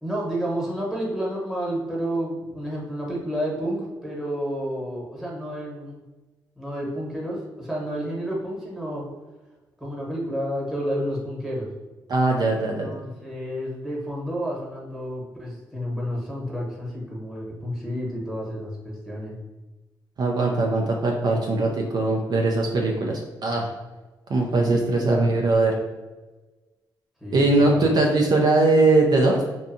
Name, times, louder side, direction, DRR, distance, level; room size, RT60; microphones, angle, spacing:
voice 1, 0.0-6.0 6.6-9.0 9.8-11.7 12.5-19.4 24.5-25.9 27.2-28.0, equal, 5° right, -4 dB, 1.0 m, -30 dB
voice 2, 12.1-13.0 20.2-23.7 24.3-25.7 27.3-29.4, right 2 dB, 55° right, 0 dB, 0.4 m, -21 dB
2.7 x 2.2 x 2.6 m, 1.2 s
cardioid pair, 80°, 9 cm